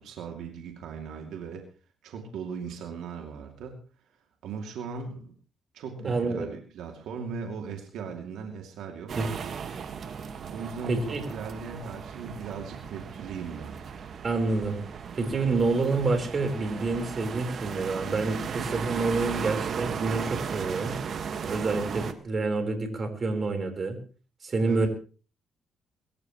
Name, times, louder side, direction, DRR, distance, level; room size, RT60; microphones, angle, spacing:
voice 1, 0.0-1.7 2.0-3.8 4.4-5.3 5.7-9.2 10.5-13.8 24.6-24.9, right 5 dB, 80° right, 3 dB, 2.6 m, -38 dB
voice 2, 6.0-6.5 9.2-9.3 10.9-11.2 14.2-14.8 15.2-21.0 21.4-24.0 24.4-24.9, right 3 dB, 40° right, 4 dB, 4.4 m, -28 dB
sound 1, 9.1-22.1, right 6 dB, 55° right, 1.7 m, -36 dB
23.5 x 14.0 x 3.2 m, 0.37 s
cardioid pair, 90°, 0 cm